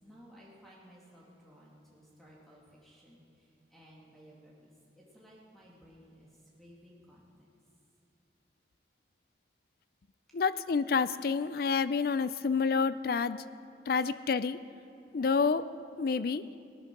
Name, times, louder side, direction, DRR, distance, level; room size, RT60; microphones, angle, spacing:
voice 1, 0.0-3.2 3.7-6.3 6.6-7.3, equal, ahead, -5 dB, 2.0 m, -57 dB
voice 2, 10.3-13.4 13.9-14.6 15.1-15.6 16.0-16.4, left 5 dB, 55° left, 15 dB, 0.4 m, -28 dB
18.5 x 9.7 x 5.9 m, 2.5 s
head